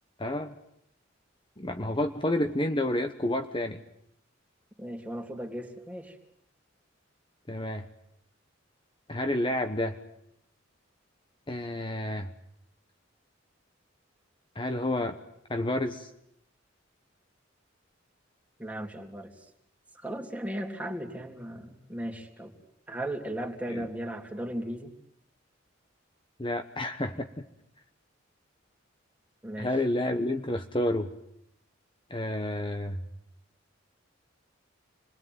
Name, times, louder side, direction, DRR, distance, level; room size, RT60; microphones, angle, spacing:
voice 1, 0.2-0.5 1.6-3.8 7.5-7.9 9.1-10.0 11.5-12.3 14.5-15.2 15.5-16.1 23.7-23.9 26.4-27.4 29.6-31.1 32.1-33.0, left 1 dB, 25° left, 6 dB, 1.2 m, -30 dB
voice 2, 4.8-6.1 18.6-19.3 19.9-22.5 22.9-24.9 29.4-29.7, right 1 dB, 5° right, 3 dB, 3.2 m, -36 dB
29.0 x 22.0 x 9.5 m, 0.76 s
head